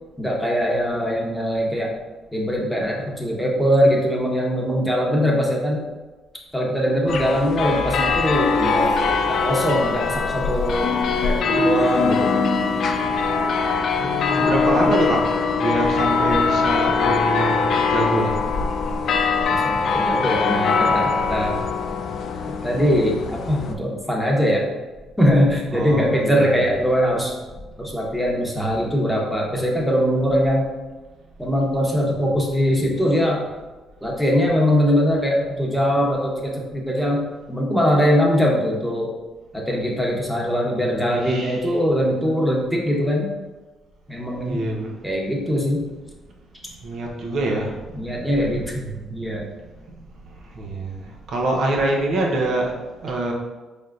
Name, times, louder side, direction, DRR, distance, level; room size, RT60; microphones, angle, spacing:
voice 1, 0.2-1.9 2.3-5.8 6.5-9.0 9.3-10.9 11.2-12.3 14.4-14.6 19.3-21.6 22.6-24.6 25.2-27.3 27.8-30.7 31.4-33.4 34.0-39.1 39.5-43.3 44.1-44.6 45.0-45.9 47.9-49.5, equal, ahead, -2 dB, 1.0 m, -21 dB
sound 1, 7.1-23.7, left 5 dB, 65° left, 0.4 m, -22 dB
sound 2, 8.3-9.6 10.8-13.0, left 1 dB, 40° left, 0.8 m, -25 dB
voice 2, 14.0-18.4 25.7-26.8 41.1-41.7 44.5-45.0 46.8-48.2 50.5-52.7 53.0-53.3, right 2 dB, 65° right, -1 dB, 0.8 m, -25 dB
4.3 x 3.4 x 2.5 m, 1.2 s
supercardioid pair, 70°, 0 cm